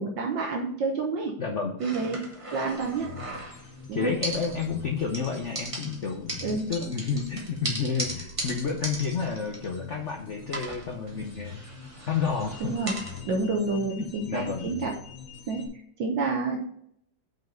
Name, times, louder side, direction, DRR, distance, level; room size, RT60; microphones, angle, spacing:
voice 1, 0.0-1.3 1.8-3.2 3.9-4.2 6.4-6.7 12.6-13.0 13.3-15.0 15.5-15.7 16.0-16.6, right 3 dB, 65° right, 2 dB, 1.5 m, -29 dB
voice 2, 1.4-1.8 3.9-11.6 12.1-12.7 14.0-14.7, left 5 dB, 85° left, 3 dB, 0.6 m, -30 dB
sound 1, 1.8-3.8 4.2-4.9 5.1-10.1 10.5-13.2, right 1 dB, 25° right, 0.7 m, -37 dB
sound 2, 2.7-15.7, left 5 dB, 70° left, 2.2 m, -45 dB
5.7 x 5.7 x 5.1 m, 0.70 s
omnidirectional pair, 2.4 m